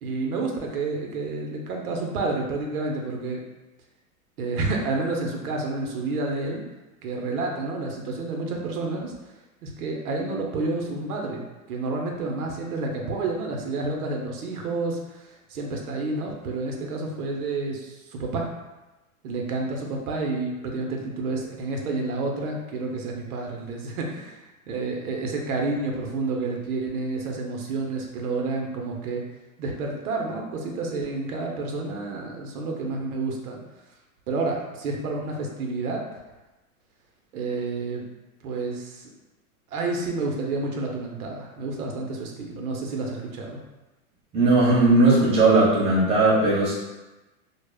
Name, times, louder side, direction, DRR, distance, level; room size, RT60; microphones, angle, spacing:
voice 1, 0.0-3.4 4.4-6.6 7.0-9.1 9.6-18.5 19.2-24.4 24.7-29.2 29.6-33.6 34.3-36.0 37.3-38.0 38.4-39.1 39.7-43.6, right 3 dB, 75° right, 0 dB, 0.7 m, -29 dB
voice 2, 44.3-46.7, right 2 dB, 15° right, -6 dB, 0.8 m, -18 dB
2.1 x 2.0 x 3.3 m, 1.1 s
hypercardioid pair, 125°, 44 cm